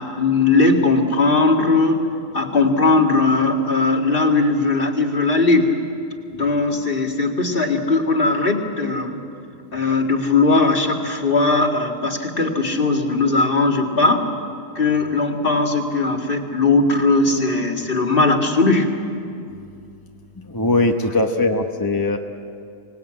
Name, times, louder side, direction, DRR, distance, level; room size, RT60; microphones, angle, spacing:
voice 1, 0.0-2.0 2.3-5.7 6.3-9.2 9.7-14.3 14.8-18.9, left 3 dB, 35° left, 2 dB, 2.1 m, -18 dB
voice 2, 20.4-22.2, left 2 dB, 20° left, 3 dB, 0.7 m, -20 dB
24.5 x 19.5 x 8.8 m, 2.5 s
omnidirectional pair, 1.7 m